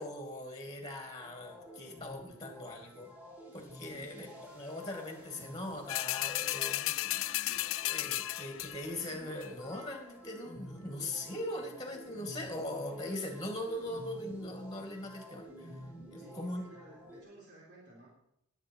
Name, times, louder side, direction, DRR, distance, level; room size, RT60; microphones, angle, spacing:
voice 1, 0.0-3.1 3.5-15.7 16.1-16.6, left 1 dB, 15° left, 3 dB, 2.2 m, -41 dB
sound 1, 1.2-17.2, equal, 10° right, 3.7 m, -51 dB
sound 2, 5.9-9.0 9.4-9.5, left 17 dB, 60° left, 0.4 m, -34 dB
voice 2, 16.2-18.1, right 2 dB, 50° right, -4 dB, 3.7 m, -55 dB
21.0 x 8.3 x 4.6 m, 0.77 s
head